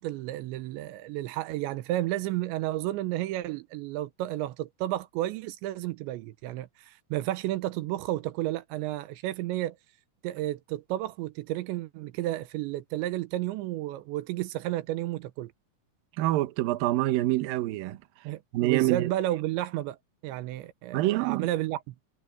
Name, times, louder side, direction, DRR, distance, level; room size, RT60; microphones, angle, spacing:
voice 1, 0.0-9.8 10.2-15.5 18.2-20.0 20.2-21.9, right 15 dB, 90° right, 3.1 m, -32 dB
voice 2, 16.2-18.0 18.5-19.1 20.9-21.5, right 17 dB, 70° right, 2.3 m, -26 dB
omnidirectional pair, 5.2 m